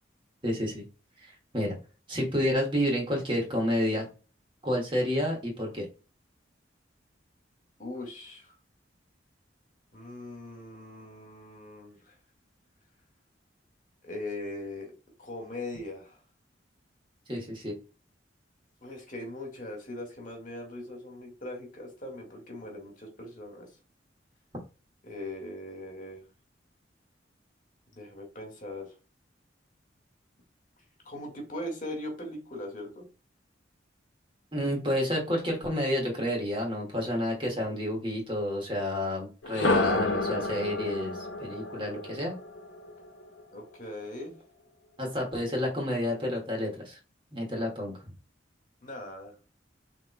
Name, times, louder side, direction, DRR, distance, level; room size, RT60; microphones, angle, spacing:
voice 1, 0.4-0.8 1.2-1.7 2.1-4.1 4.6-5.9 17.3-17.7 34.5-42.3 45.0-47.0 47.3-48.1, left 1 dB, 30° right, -1 dB, 1.9 m, -30 dB
voice 2, 7.8-8.5 9.9-12.2 14.0-14.9 15.2-16.2 18.8-23.7 25.0-26.3 27.9-28.9 31.1-33.1 43.5-44.3 48.8-49.4, left 1 dB, 45° left, 2 dB, 1.9 m, -40 dB
sound 1, 39.4-43.4, left 2 dB, 90° left, 0.7 m, -30 dB
6.5 x 3.6 x 2.2 m, 0.33 s
head